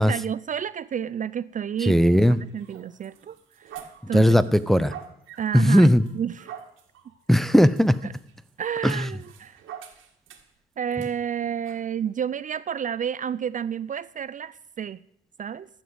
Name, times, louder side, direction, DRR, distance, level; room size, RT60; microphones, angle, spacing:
voice 1, 0.0-3.8 4.1-4.4 5.4-6.6 8.0-8.1 8.6-9.6 10.8-15.0 15.4-15.7, right 8 dB, 40° right, 17 dB, 0.4 m, -30 dB
voice 2, 1.8-2.4 4.1-4.9 5.5-6.0 7.3-8.0 8.8-9.1, equal, ahead, 13 dB, 0.6 m, -18 dB
sound 1, 1.9-10.6 11.0-11.1 11.6-11.8, right 9 dB, 80° right, 2.0 m, -46 dB
13.0 x 7.2 x 8.0 m, 0.75 s
cardioid pair, 90°, 20 cm